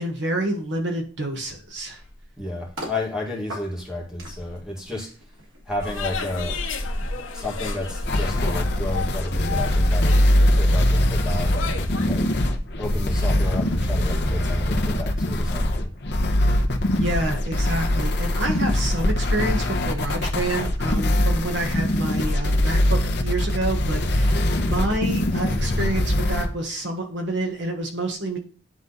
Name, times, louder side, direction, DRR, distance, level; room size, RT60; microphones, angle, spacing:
voice 1, 0.0-2.0 16.9-28.4, right 1 dB, 65° right, 2 dB, 1.6 m, -28 dB
sound 1, 1.7-3.0 3.5-9.1 9.4-9.7, equal, 85° right, 3.4 m, -38 dB
voice 2, 2.4-5.1 5.7-6.6 7.2-12.3 12.8-15.9, left 1 dB, 5° right, -3 dB, 2.1 m, -32 dB
sound 2, 5.8-12.1, left 4 dB, 85° left, 1.1 m, -33 dB
sound 3, 8.1-26.5, left 1 dB, 55° left, 1.0 m, -22 dB
10.5 x 3.7 x 4.1 m, 0.39 s
head